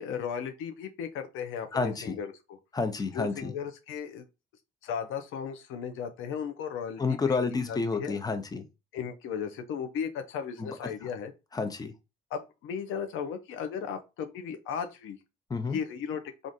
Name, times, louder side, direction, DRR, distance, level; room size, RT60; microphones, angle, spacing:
voice 1, 0.0-2.6 3.1-4.2 4.8-7.0 7.3-8.2 8.9-11.3 12.3-15.2 15.7-16.2, left 7 dB, 90° left, 0.6 m, -36 dB
voice 2, 1.7-2.2 2.7-3.5 7.0-8.6 10.6-10.8 11.0-11.1 11.5-11.9 15.5-15.8, left 4 dB, 20° left, 0.6 m, -30 dB
3.5 x 2.5 x 2.6 m
cardioid pair, 90°, 20 cm